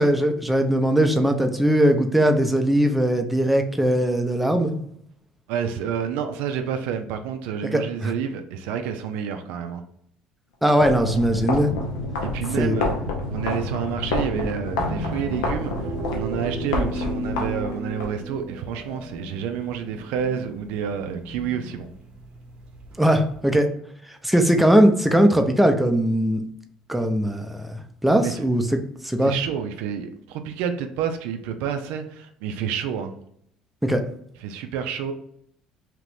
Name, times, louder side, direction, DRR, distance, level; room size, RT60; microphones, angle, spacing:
voice 1, 0.0-4.7 7.7-8.1 10.6-11.7 12.6-12.8 23.0-23.7 24.2-26.4 26.9-28.8 29.0-29.3 33.8-34.0, right 1 dB, 5° right, 5 dB, 0.5 m, -20 dB
voice 2, 5.5-9.8 12.3-12.9 13.3-15.7 16.1-21.9 28.2-28.4 29.2-33.1 34.4-35.1, right 8 dB, 70° right, 7 dB, 0.3 m, -29 dB
sound 1, 10.7-18.1, left 2 dB, 80° left, 0.6 m, -28 dB
sound 2, 14.8-23.5, right 1 dB, 45° right, 0.7 m, -35 dB
2.9 x 2.5 x 3.3 m, 0.69 s
hypercardioid pair, 65°, 3 cm